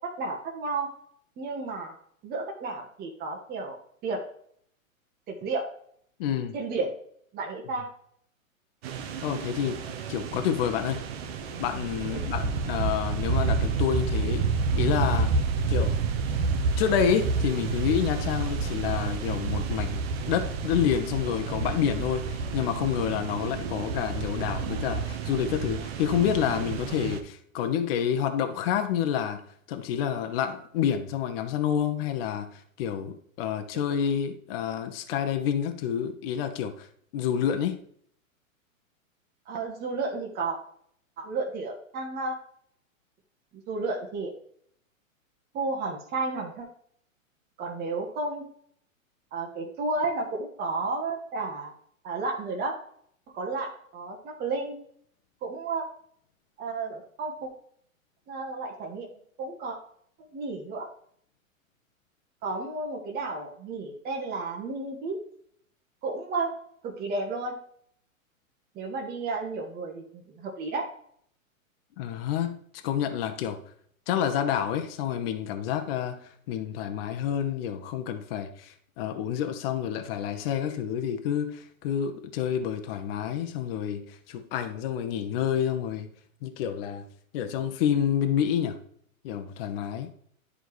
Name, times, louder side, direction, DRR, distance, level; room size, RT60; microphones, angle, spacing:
voice 1, 0.2-0.9 1.4-1.9 2.2-4.2 5.3-5.6 6.5-6.9 7.3-7.9 12.1-12.2 33.7-33.8 39.5-40.6 41.2-42.4 43.5-44.3 45.5-46.7 47.6-48.4 49.3-51.7 52.0-52.7 53.3-54.7 55.4-55.8 56.6-57.5 58.3-59.1 59.4-59.8 60.3-60.8 62.4-65.2 66.0-66.5 66.8-67.5 68.7-70.0 70.3-70.9, right 3 dB, 25° right, 1.3 m, -32 dB
voice 2, 6.2-6.5 9.2-9.8 10.1-11.0 11.6-14.4 14.8-15.4 15.7-16.0 16.8-20.0 20.3-29.4 29.7-36.9 37.1-37.8 72.0-72.6 72.8-73.6 74.1-86.1 86.4-87.1 87.3-88.8 89.2-90.1, left 9 dB, 45° left, 1.1 m, -28 dB
sound 1, 8.8-27.2, right 4 dB, 45° right, 1.1 m, -29 dB
10.5 x 5.0 x 3.2 m
hypercardioid pair, 125°, 41 cm